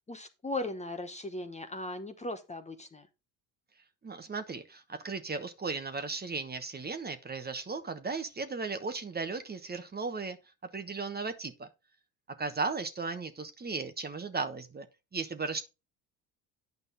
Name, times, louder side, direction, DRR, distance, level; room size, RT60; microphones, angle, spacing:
voice 1, 0.1-3.1, left 2 dB, 15° left, 1.0 m, -38 dB
voice 2, 4.0-10.4 10.7-11.7 12.4-14.9 15.1-15.6, right 4 dB, 25° right, 1.1 m, -36 dB
9.4 x 5.3 x 4.0 m
supercardioid pair, 75°, 40 cm